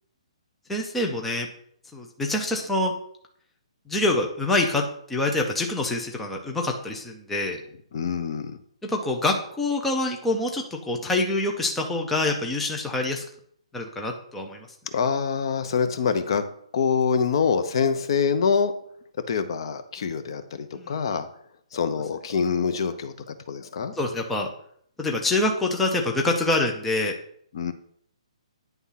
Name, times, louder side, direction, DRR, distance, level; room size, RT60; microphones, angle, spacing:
voice 1, 0.7-1.5 1.9-2.9 3.9-4.8 5.1-7.6 8.8-13.2 13.7-14.6 20.7-20.9 24.0-24.5 25.0-27.1, left 2 dB, 5° left, 1 dB, 0.5 m, -25 dB
voice 2, 7.9-8.5 14.9-16.5 16.7-18.7 19.3-21.3 21.7-23.9 27.5-27.7, left 6 dB, 45° left, 9 dB, 0.7 m, -25 dB
9.7 x 3.5 x 5.7 m, 0.66 s
hypercardioid pair, 170°, 4 cm